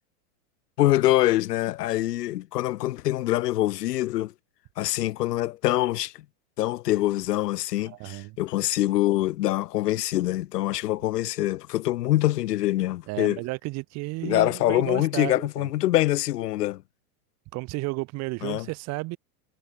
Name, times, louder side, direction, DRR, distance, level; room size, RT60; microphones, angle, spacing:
voice 1, 0.8-4.3 4.8-6.1 6.6-13.4 14.2-16.8 18.4-18.7, left 15 dB, 85° left, 1.0 m, -24 dB
voice 2, 7.8-8.4 13.1-15.7 17.5-19.2, right 23 dB, 35° right, 1.5 m, -33 dB
supercardioid pair, 145°, 47 cm